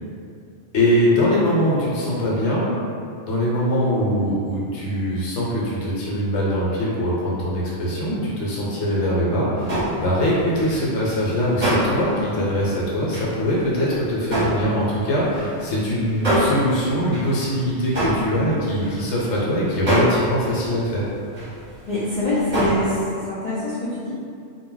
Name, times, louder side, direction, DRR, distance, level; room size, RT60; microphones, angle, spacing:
voice 1, 0.7-2.7 3.3-21.0, equal, 70° left, -6 dB, 1.0 m, -22 dB
sound 1, 9.6-19.4 19.8-21.8 22.0-23.0, right 1 dB, 35° right, 0.8 m, -26 dB
voice 2, 21.9-24.2, left 1 dB, 90° left, -10 dB, 0.3 m, -24 dB
2.2 x 2.0 x 3.7 m, 2.4 s
omnidirectional pair, 1.3 m